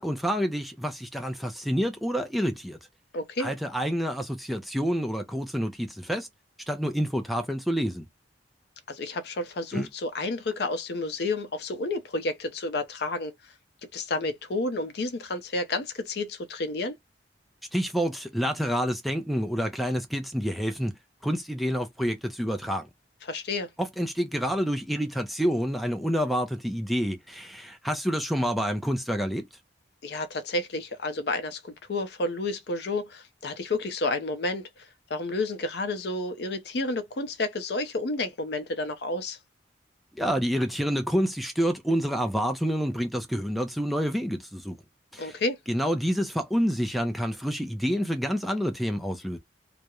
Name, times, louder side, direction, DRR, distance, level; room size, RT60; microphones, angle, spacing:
voice 1, 0.0-2.8 3.4-6.3 6.7-8.0 9.7-9.9 17.7-20.9 21.2-22.9 23.8-29.4 40.2-44.8 45.1-45.3 45.7-49.4, equal, ahead, 0.3 m, -28 dB
voice 2, 3.1-3.5 8.9-13.3 13.9-17.0 23.2-23.7 30.0-39.4 45.2-45.6, left 2 dB, 65° left, 0.5 m, -30 dB
2.3 x 2.0 x 2.9 m
head